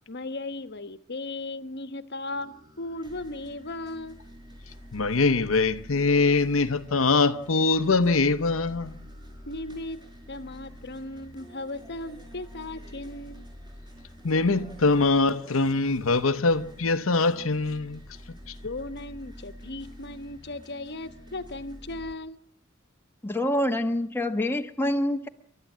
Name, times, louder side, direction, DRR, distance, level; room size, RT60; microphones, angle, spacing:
voice 1, 0.1-4.2 9.5-10.0 10.3-13.5 18.6-22.4, left 2 dB, 55° left, 1.2 m, -37 dB
sound 1, 2.3-22.1, equal, 20° right, 5.7 m, -47 dB
voice 2, 4.9-8.9 14.2-18.0, left 3 dB, 75° left, 0.8 m, -23 dB
voice 3, 23.2-25.3, left 1 dB, 10° left, 1.1 m, -26 dB
28.5 x 12.5 x 7.4 m
head